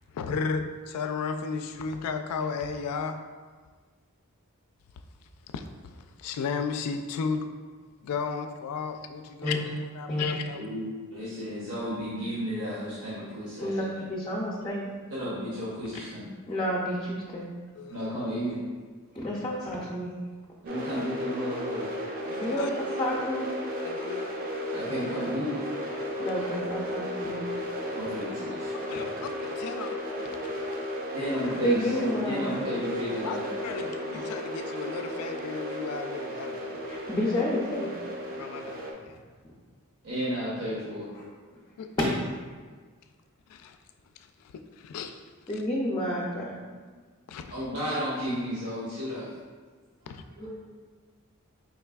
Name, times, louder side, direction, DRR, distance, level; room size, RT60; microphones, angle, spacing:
voice 1, 0.1-3.2 5.5-5.6 6.2-7.5 8.0-10.6 17.8-18.0 22.3-22.7 23.8-24.4 28.9-30.3 33.2-36.7 38.4-39.2 41.8-41.9 43.5-43.8 44.5-45.2 47.3-47.5 50.1-50.2, left 5 dB, 90° left, 0.3 m, -34 dB
voice 2, 10.5-13.8 15.1-16.3 17.9-18.6 20.6-21.9 24.7-25.6 27.9-28.7 31.1-33.5 34.1-34.3 40.0-41.1 42.0-42.1 47.5-49.3 50.1-50.5, equal, 70° right, 0.9 m, -33 dB
voice 3, 13.6-14.9 16.5-17.5 19.1-20.1 22.4-23.5 26.2-27.4 29.8-29.9 31.6-32.5 36.9-37.9 42.0-42.1 45.5-47.0 50.4-50.5, equal, 20° left, 0.4 m, -30 dB
sound 1, 20.7-38.9, equal, 40° right, 0.5 m, -34 dB
4.6 x 3.3 x 2.3 m
head